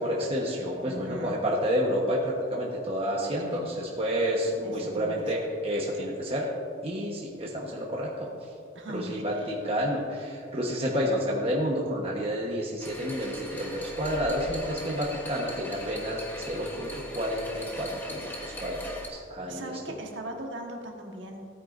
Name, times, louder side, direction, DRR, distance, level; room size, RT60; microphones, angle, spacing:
voice 1, 0.0-6.5 6.8-8.3 8.9-19.7, equal, 30° right, -3 dB, 1.2 m, -30 dB
voice 2, 0.8-1.4 3.4-3.9 4.6-5.3 8.7-9.6 19.5-21.5, right 1 dB, 70° right, 1 dB, 1.4 m, -39 dB
sound 1, 12.8-19.1, left 1 dB, 10° left, 1.1 m, -40 dB
16.5 x 9.2 x 2.6 m, 2.3 s
head